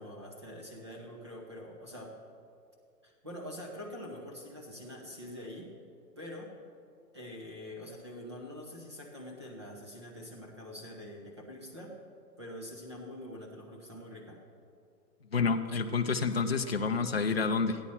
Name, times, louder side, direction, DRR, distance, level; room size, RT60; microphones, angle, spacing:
voice 1, 0.0-2.1 3.0-5.7 6.2-6.5 7.1-11.9 12.4-14.4, left 1 dB, 15° right, -1 dB, 0.7 m, -45 dB
voice 2, 15.3-17.8, left 4 dB, 40° left, 5 dB, 0.5 m, -29 dB
15.0 x 10.0 x 4.2 m, 2.4 s
hypercardioid pair, 175°, 49 cm